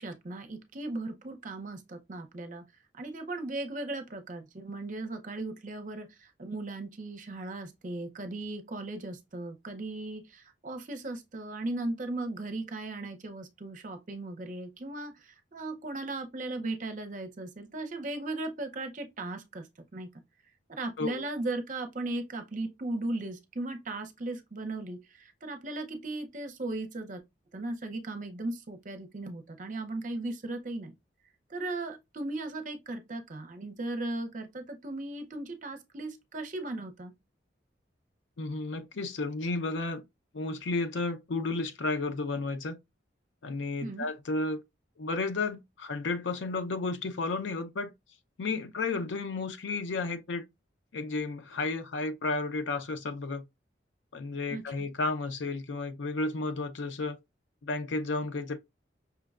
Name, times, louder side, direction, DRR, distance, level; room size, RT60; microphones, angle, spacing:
voice 1, 0.0-2.6 2.9-19.7 19.9-20.1 20.7-27.2 27.5-30.9 31.5-37.1 43.8-44.1 54.5-54.9, right 2 dB, 45° right, 0.6 m, -37 dB
voice 2, 38.4-40.0 40.3-42.8 43.4-44.6 45.0-47.9 48.4-50.4 50.9-53.5 54.1-57.2 57.6-58.6, left 3 dB, 80° left, 0.5 m, -32 dB
5.6 x 2.2 x 2.3 m
head